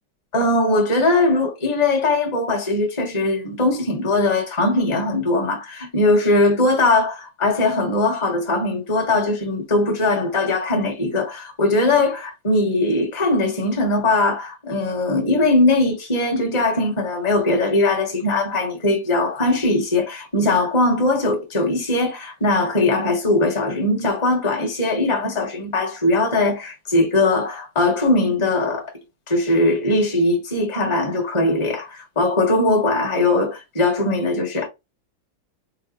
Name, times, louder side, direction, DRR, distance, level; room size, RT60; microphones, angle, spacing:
voice 1, 0.3-28.9 29.3-34.7, left 2 dB, 20° left, 1.1 m, -20 dB
5.0 x 2.1 x 2.9 m
omnidirectional pair, 2.1 m